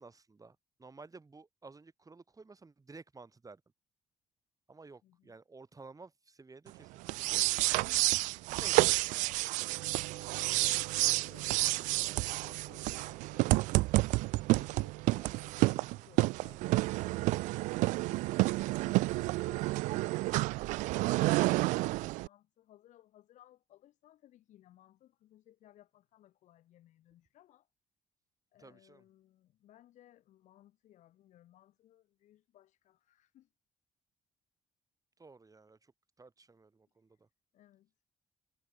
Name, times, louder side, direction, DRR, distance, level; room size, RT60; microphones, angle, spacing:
voice 1, 0.0-3.6 4.7-9.0 15.8-16.1 28.6-29.0 35.2-35.9 36.2-37.3, right 3 dB, 25° right, 2.9 m, -54 dB
voice 2, 5.0-5.3 10.1-13.5 14.1-18.5 18.8-27.7 28.5-33.5 37.1-37.2 37.5-37.9, left 13 dB, 70° left, 7.7 m, -61 dB
sound 1, 7.0-22.3, right 21 dB, 80° right, 0.5 m, -30 dB
hypercardioid pair, 55°, 13 cm